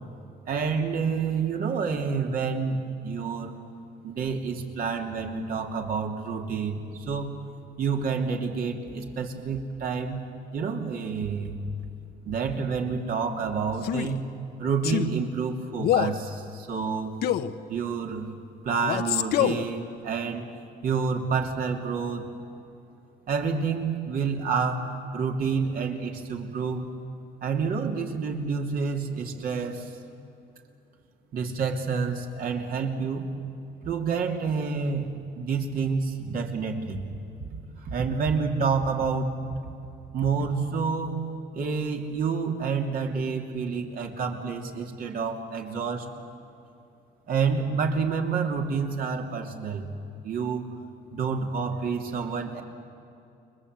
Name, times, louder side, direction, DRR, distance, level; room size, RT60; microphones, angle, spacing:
voice 1, 0.4-3.5 4.0-7.4 7.8-10.2 10.5-11.6 12.2-14.3 14.6-17.2 17.7-18.3 18.6-20.5 20.8-22.2 23.3-26.9 27.4-29.9 31.3-33.3 33.8-37.1 37.8-39.3 40.1-41.2 41.5-46.1 47.3-49.9 50.2-50.7 51.1-52.6, right 5 dB, 60° right, 2 dB, 2.9 m, -28 dB
Male speech man speaking, 13.8-14.2 14.8-15.1 15.8-16.2 17.2-17.5 18.8-19.7, left 11 dB, 70° left, 1.0 m, -25 dB
29.5 x 22.5 x 8.2 m, 2.6 s
cardioid pair, 110°, 17 cm